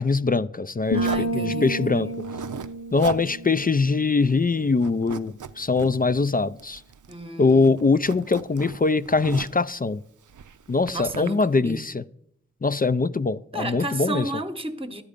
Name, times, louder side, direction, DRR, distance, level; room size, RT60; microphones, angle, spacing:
voice 1, 0.0-1.1 1.3-2.1 2.9-6.8 7.4-10.0 10.7-12.0 12.6-14.2, left 4 dB, 30° left, 0.4 m, -22 dB
sound 1, 0.9-4.6, right 1 dB, 60° left, 0.8 m, -31 dB
voice 2, 0.9-2.1 7.1-7.8 10.9-11.9 13.5-15.0, right 1 dB, 20° right, 0.9 m, -32 dB
Zipper (clothing), 1.0-1.4 2.1-2.7 3.0-3.3 3.6-3.7 4.1-4.5 4.8-5.9 6.6-7.2 7.5-9.7 10.3-11.3, right 7 dB, 85° right, 0.5 m, -37 dB
12.5 x 8.5 x 5.1 m
wide cardioid pair, 45°, 30 cm